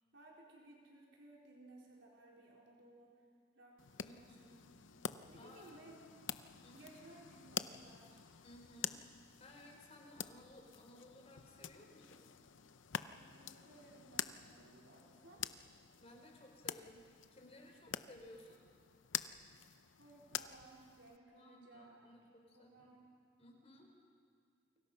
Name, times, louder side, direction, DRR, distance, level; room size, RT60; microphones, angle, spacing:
voice 1, 0.1-3.3 3.5-4.5 5.3-6.3 6.7-8.2 13.1-15.5 20.0-22.2 22.5-23.1, right 2 dB, 85° right, -3 dB, 4.4 m, -60 dB
sound 1, 3.8-21.2, left 9 dB, 85° left, 0.7 m, -47 dB
voice 2, 4.0-4.8 5.4-5.8 6.6-6.9 8.4-12.3 16.0-18.6 21.4-22.9 23.4-23.9, left 1 dB, 35° left, 1 dB, 4.5 m, -59 dB
29.5 x 24.0 x 5.6 m, 2.1 s
head